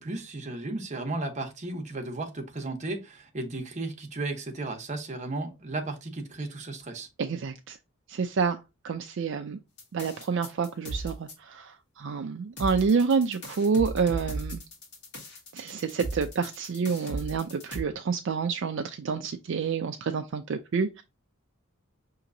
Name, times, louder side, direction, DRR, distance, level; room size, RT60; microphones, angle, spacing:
voice 1, 0.0-7.1, right 2 dB, 35° right, 0.9 m, -34 dB
voice 2, 7.2-7.8 8.1-8.6 8.8-9.6 9.9-14.6 15.5-21.0, right 5 dB, 60° right, 0.4 m, -28 dB
sound 1, 9.8-11.3 12.6-17.8, right 2 dB, 55° left, 1.8 m, -37 dB
5.8 x 2.9 x 2.6 m
head